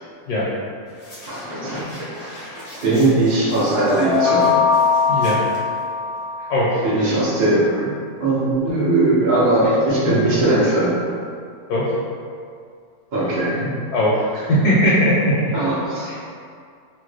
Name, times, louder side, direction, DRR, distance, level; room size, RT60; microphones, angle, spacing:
sound 1, 0.9-6.2, left 1 dB, 50° left, 0.4 m, -38 dB
voice 1, 1.3-2.5 2.8-4.5 6.8-7.9 8.2-11.0 13.1-13.7 15.5-16.2, right 2 dB, 75° right, -9 dB, 0.4 m, -19 dB
sound 2, 4.0-6.8, left 5 dB, 60° right, 0.8 m, -20 dB
voice 2, 5.1-5.4 6.5-6.8 10.0-10.1 11.7-11.9 13.9-15.5 16.1-16.2, equal, 70° left, -7 dB, 1.1 m, -19 dB
2.9 x 2.1 x 3.2 m, 2.2 s
omnidirectional pair, 1.8 m